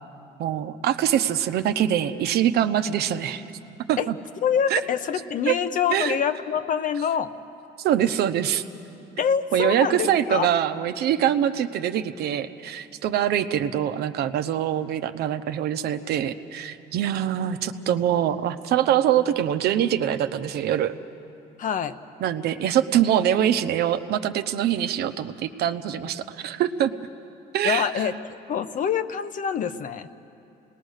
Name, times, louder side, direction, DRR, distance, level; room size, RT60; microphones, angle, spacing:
voice 1, 0.4-3.4 3.9-4.2 4.7-4.8 5.5-5.6 5.9-6.2 7.8-8.6 9.5-20.9 22.2-26.9 27.5-27.9, right 10 dB, 70° right, 9 dB, 0.9 m, -24 dB
voice 2, 4.4-7.3 9.2-10.5 21.6-22.0 27.6-28.1 28.5-30.1, left 8 dB, 50° left, 11 dB, 0.9 m, -25 dB
28.5 x 19.5 x 6.5 m, 2.7 s
cardioid pair, 110°, 17 cm